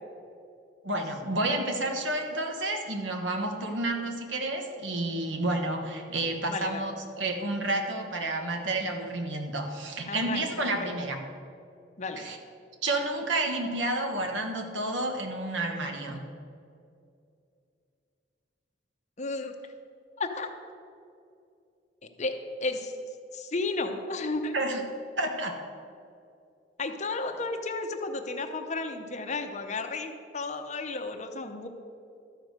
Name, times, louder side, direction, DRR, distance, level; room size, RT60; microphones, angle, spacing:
voice 1, 0.8-6.9 7.2-11.2 12.2-12.4 12.8-16.2 24.5-24.8 25.2-25.6, right 2 dB, 85° right, 4 dB, 1.2 m, -30 dB
voice 2, 6.5-6.8 10.1-11.0 12.0-12.2 19.2-19.5 20.2-20.5 22.2-22.9 23.3-24.6 26.8-31.7, left 3 dB, 40° left, 6 dB, 0.7 m, -33 dB
12.5 x 4.9 x 6.5 m, 2.5 s
head